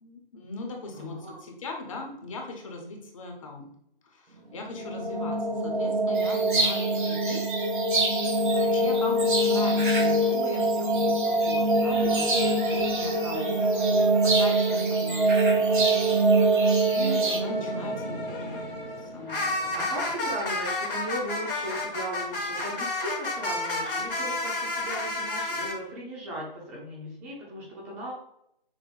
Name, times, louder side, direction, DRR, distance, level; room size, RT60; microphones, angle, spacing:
voice 1, 0.0-3.7 4.0-7.5 8.5-13.6 13.9-15.7 16.8-19.9, left 2 dB, 35° left, 2 dB, 0.9 m, -39 dB
voice 2, 0.9-1.4 4.8-4.9 8.8-9.1 12.9-13.3 13.7-13.8 14.9-15.1 17.6-17.7 19.8-28.1, right 1 dB, 15° right, -4 dB, 0.8 m, -37 dB
sound 1, 4.6-19.5, right 2 dB, 85° right, 1.0 m, -25 dB
sound 2, 6.1-17.4, right 3 dB, 60° right, 1.3 m, -32 dB
sound 3, 11.9-14.8 15.2-25.8, left 2 dB, 65° left, 1.6 m, -33 dB
6.1 x 2.1 x 3.9 m, 0.75 s
figure-of-eight pair, 145°, 29 cm